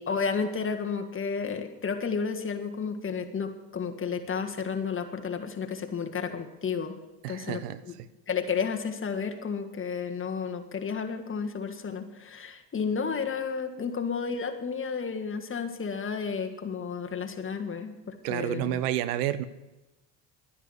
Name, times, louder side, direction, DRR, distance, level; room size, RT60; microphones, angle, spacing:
voice 1, 0.0-6.9 7.3-7.6 8.3-18.8, left 5 dB, 25° left, 5 dB, 1.7 m, -32 dB
voice 2, 7.2-7.8 18.2-19.5, right 12 dB, 90° right, 15 dB, 0.9 m, -29 dB
11.5 x 9.9 x 8.0 m, 1.1 s
supercardioid pair, 90°, 45 cm